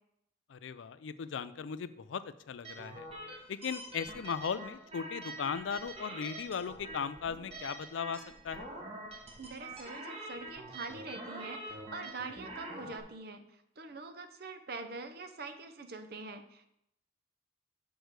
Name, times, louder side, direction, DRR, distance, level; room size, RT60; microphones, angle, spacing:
voice 1, 0.5-3.1 3.5-8.7, left 6 dB, 75° left, 14 dB, 0.4 m, -37 dB
sound 1, 2.6-13.0, right 2 dB, 30° right, 1.3 m, -45 dB
voice 2, 9.4-16.7, right 3 dB, 55° right, 8 dB, 0.7 m, -44 dB
6.3 x 4.7 x 6.5 m, 0.79 s
head